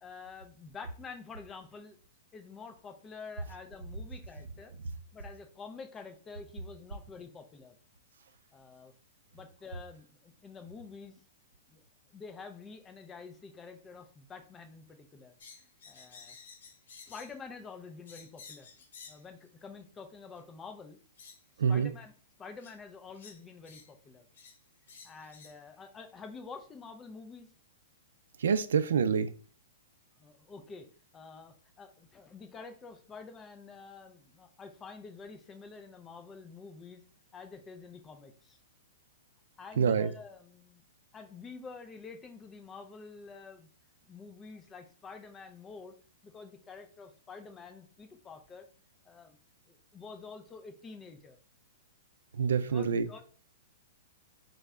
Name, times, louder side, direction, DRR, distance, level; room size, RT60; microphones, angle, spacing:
voice 1, 0.0-2.0 2.3-4.7 5.1-7.8 8.5-8.9 9.3-11.1 11.7-11.8 12.1-16.4 17.1-18.7 19.1-21.0 21.7-22.1 22.4-24.3 25.0-27.5 30.2-30.9 31.1-37.0 37.3-38.6 39.6-40.8 41.1-43.7 44.1-45.9 46.2-48.7 49.1-49.4 49.7-51.4 52.7-53.2, left 4 dB, 10° left, 6 dB, 0.3 m, -48 dB
sound 1, 15.4-17.4 18.1-19.3 20.4-20.5 21.2-21.4 22.6-22.7 23.1-23.9 24.3-24.6 24.9-25.6, left 5 dB, 55° left, 0.9 m, -52 dB
voice 2, 21.6-21.9 28.4-29.3 39.8-40.1 52.3-53.1, right 6 dB, 80° right, 12 dB, 0.4 m, -26 dB
3.7 x 2.1 x 3.4 m, 0.41 s
hypercardioid pair, 180°, 0 cm